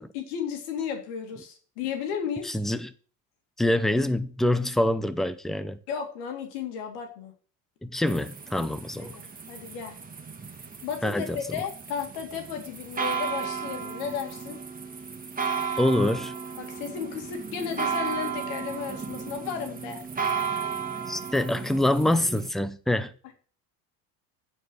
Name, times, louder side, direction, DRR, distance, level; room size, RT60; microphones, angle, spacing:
voice 1, 0.0-2.5 5.9-7.3 9.0-10.0 10.8-14.6 16.6-20.0, left 7 dB, 80° left, 2.4 m, -34 dB
voice 2, 2.4-2.9 3.6-5.8 7.8-9.1 11.0-11.4 15.8-16.3 21.1-23.1, left 1 dB, ahead, 0.5 m, -25 dB
sound 1, 8.0-22.5, right 6 dB, 20° right, 1.6 m, -34 dB
9.2 x 4.8 x 6.2 m
supercardioid pair, 100°, 45 cm